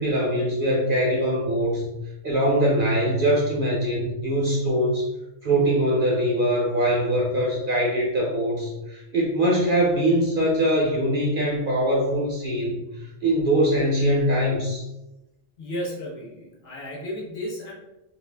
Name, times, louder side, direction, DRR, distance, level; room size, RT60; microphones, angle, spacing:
voice 1, 0.0-1.9 2.2-5.1 5.4-14.8, right 1 dB, 55° right, -4 dB, 0.6 m, -22 dB
voice 2, 15.6-17.7, equal, 60° left, -2 dB, 0.9 m, -33 dB
2.5 x 2.3 x 3.3 m, 0.95 s
omnidirectional pair, 1.3 m